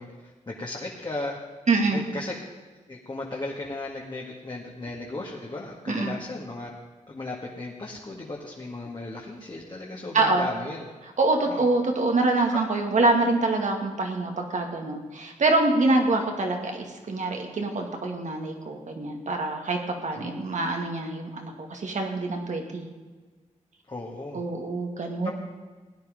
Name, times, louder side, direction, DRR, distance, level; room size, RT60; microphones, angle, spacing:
voice 1, 0.0-1.4 1.9-2.4 2.9-6.7 7.1-10.9 11.4-11.6 12.5-12.6 20.1-20.3 23.9-24.4 25.2-25.3, left 2 dB, 35° left, -2 dB, 1.9 m, -36 dB
voice 2, 1.7-2.1 5.9-6.2 10.1-10.5 11.2-22.9 24.3-25.3, right 2 dB, 65° right, 3 dB, 2.1 m, -25 dB
16.5 x 9.9 x 5.1 m, 1.4 s
cardioid pair, 60°, 13 cm